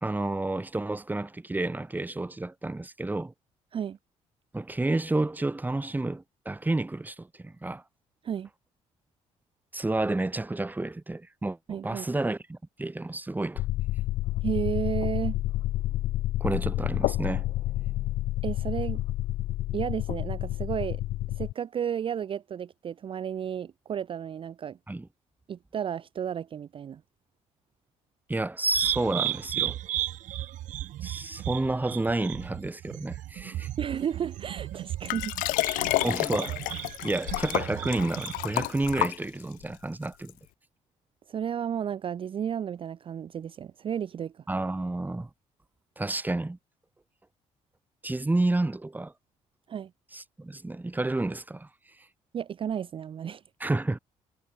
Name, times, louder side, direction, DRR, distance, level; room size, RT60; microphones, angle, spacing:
voice 1, 0.0-3.3 4.5-7.8 9.7-13.6 16.4-17.4 24.9-25.1 28.3-29.8 31.0-33.7 36.0-36.6 37.0-40.3 44.5-45.3 46.0-46.6 48.0-49.1 50.1-51.7 53.6-54.0, right 2 dB, 15° right, 1.1 m, -30 dB
voice 2, 11.7-12.1 14.4-15.4 18.4-19.0 19.7-21.0 21.3-24.8 25.5-27.0 33.8-35.3 35.7-36.0 41.3-44.4 49.7-49.9 52.3-53.4, right 8 dB, 40° right, 0.4 m, -33 dB
sound 1, 13.6-21.5, left 15 dB, 70° left, 0.4 m, -29 dB
sound 2, 28.7-39.1, right 13 dB, 70° right, 1.1 m, -35 dB
Liquid, 35.1-39.6 40.3-40.4, left 21 dB, 85° left, 1.0 m, -30 dB
supercardioid pair, 70°, 13 cm